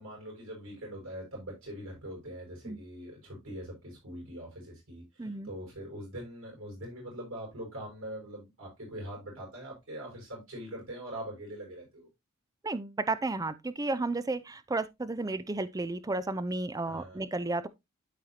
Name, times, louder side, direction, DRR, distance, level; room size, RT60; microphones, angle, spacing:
voice 1, 0.0-12.1 16.9-17.2, right 1 dB, 75° right, 5.7 m, -43 dB
voice 2, 5.2-5.5 12.6-17.7, right 2 dB, 15° right, 0.5 m, -33 dB
12.5 x 4.7 x 2.8 m
head